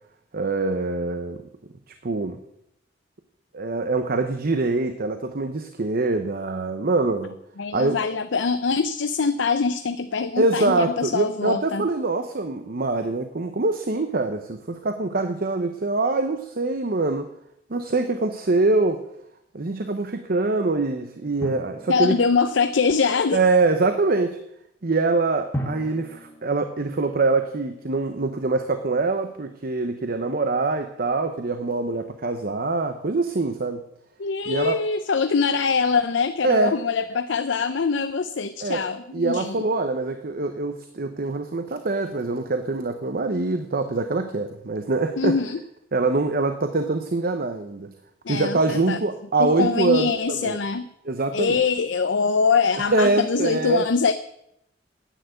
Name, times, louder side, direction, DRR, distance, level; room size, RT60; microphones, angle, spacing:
voice 1, 0.3-1.4 2.0-2.4 3.5-7.3 7.7-7.9 10.4-17.3 17.7-19.0 19.5-22.2 23.3-24.4 24.8-33.8 34.5-34.8 36.4-36.7 38.6-38.8 39.1-45.4 45.9-47.9 48.3-50.6 51.0-51.6 52.8-53.8, right 3 dB, 50° right, 8 dB, 0.9 m, -24 dB
voice 2, 7.6-11.9 21.9-23.4 34.2-39.6 45.2-45.6 48.2-49.0 49.4-50.9 51.3-54.1, left 5 dB, 70° left, 10 dB, 0.6 m, -23 dB
Drum, 21.4-22.9 25.5-27.7, equal, 15° left, 2.0 m, -36 dB
10.0 x 9.4 x 8.0 m, 0.77 s
head